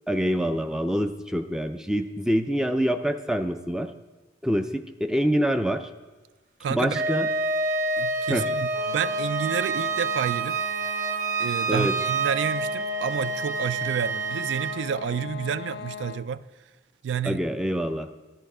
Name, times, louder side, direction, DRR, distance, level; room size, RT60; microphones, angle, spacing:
voice 1, 0.1-3.9 4.4-5.9 6.7-7.3 8.3-8.5 11.7-11.9 17.2-18.1, equal, 5° right, 8 dB, 0.4 m, -25 dB
voice 2, 6.6-7.0 8.0-10.6 11.4-16.4 17.0-17.4, right 7 dB, 90° right, 16 dB, 0.3 m, -30 dB
Wind instrument woodwind instrument, 6.9-14.8, right 3 dB, 45° right, 0.8 m, -28 dB
sound 1, 8.7-16.4, left 6 dB, 70° left, 0.4 m, -39 dB
11.5 x 6.7 x 4.9 m, 1.2 s
head